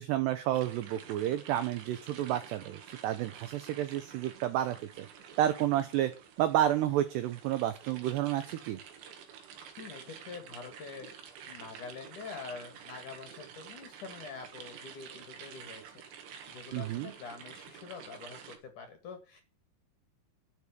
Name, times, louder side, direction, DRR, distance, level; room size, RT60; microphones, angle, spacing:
voice 1, 0.0-5.1 5.4-6.1 6.4-8.8 16.7-17.1, right 12 dB, 85° right, 11 dB, 2.4 m, -30 dB
sound 1, 0.5-18.6, right 7 dB, 65° right, 3.9 m, -49 dB
voice 2, 9.8-11.1 11.5-16.0 16.5-19.4, left 5 dB, 50° left, 7 dB, 2.7 m, -46 dB
11.0 x 6.8 x 8.3 m, 0.35 s
omnidirectional pair, 5.9 m